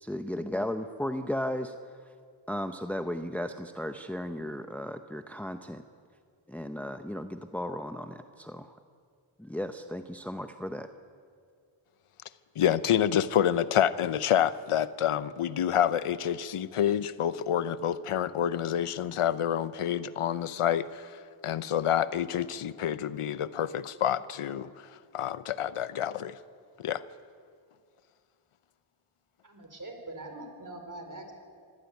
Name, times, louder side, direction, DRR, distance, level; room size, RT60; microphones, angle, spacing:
voice 1, 0.0-1.8 2.5-5.8 6.5-8.8 9.4-10.9, left 1 dB, 5° left, 7 dB, 0.9 m, -35 dB
voice 2, 12.6-21.1 21.4-24.7 25.1-26.3 26.8-27.0, left 10 dB, 90° left, 15 dB, 0.8 m, -28 dB
voice 3, 29.4-31.3, right 2 dB, 35° right, 4 dB, 4.4 m, -43 dB
25.0 x 15.5 x 9.3 m, 2.2 s
cardioid pair, 60°, 50 cm